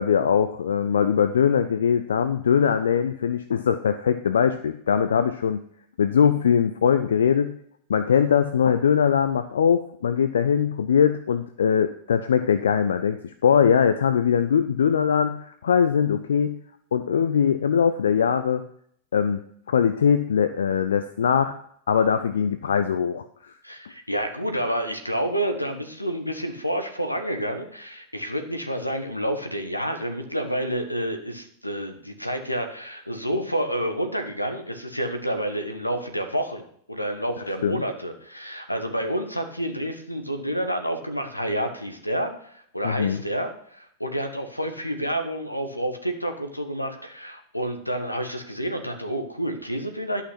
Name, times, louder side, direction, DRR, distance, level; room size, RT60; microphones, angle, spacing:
voice 1, 0.0-5.6 6.0-7.5 7.9-16.6 16.9-18.6 19.1-19.4 19.7-21.6 21.9-23.5 37.6-37.8 42.8-43.2, left 7 dB, 65° left, 11 dB, 0.5 m, -21 dB
voice 2, 23.6-50.2, equal, 90° left, 6 dB, 1.3 m, -29 dB
11.5 x 5.8 x 6.0 m, 0.65 s
figure-of-eight pair, 90°, 0 cm